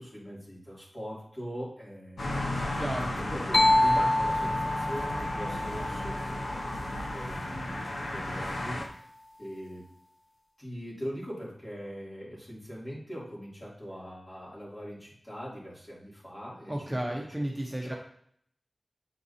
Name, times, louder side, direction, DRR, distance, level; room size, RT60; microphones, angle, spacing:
voice 1, 0.0-2.4 3.1-9.1 9.4-9.8 10.6-17.2 17.8-18.0, equal, 35° left, -6 dB, 3.0 m, -41 dB
sound 1, 2.2-8.8, left 1 dB, 90° left, 1.0 m, -34 dB
voice 2, 2.7-3.1 16.7-17.9, right 1 dB, 15° right, -1 dB, 1.1 m, -33 dB
sound 2, 3.5-7.2, left 1 dB, 65° left, 0.4 m, -27 dB
8.5 x 4.6 x 2.8 m, 0.65 s
wide cardioid pair, 50°, 0 cm